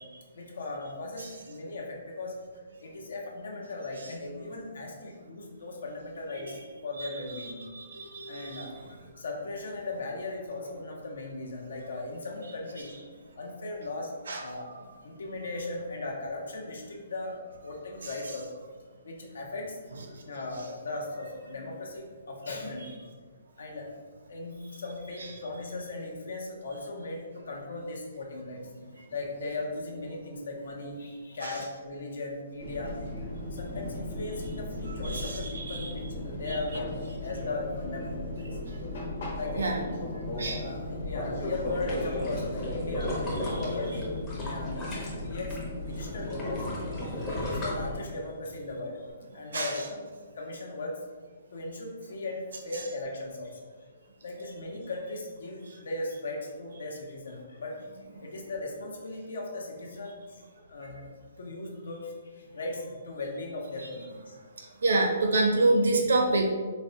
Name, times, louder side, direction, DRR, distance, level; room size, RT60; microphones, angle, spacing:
voice 1, 0.3-2.4 2.8-7.6 8.3-12.9 13.4-14.1 14.4-14.7 15.0-18.5 19.0-19.8 20.2-23.0 23.6-23.9 24.3-28.6 29.1-38.5 39.4-40.0 40.4-44.0 44.4-46.6 47.2-49.1 49.3-50.1 50.3-50.9 51.5-53.6 54.2-57.8 58.2-60.4 60.7-61.1 61.4-64.3 64.6-64.7, left 2 dB, 75° left, 0 dB, 0.7 m, -38 dB
voice 2, 7.0-8.7 14.3-14.4 31.4-31.5 35.0-35.9 39.6-39.8 40.4-40.6 43.5-43.6 49.5-49.8 64.8-66.4, right 2 dB, 85° right, 2 dB, 0.5 m, -27 dB
Fixed-wing aircraft airplane, 32.6-48.0, left 1 dB, 50° left, 0.9 m, -36 dB
sound 1, 41.5-45.6 45.9-48.5 48.9-49.0, left 1 dB, 15° left, 0.5 m, -36 dB
4.0 x 2.1 x 2.7 m, 1.5 s
hypercardioid pair, 175°, 0 cm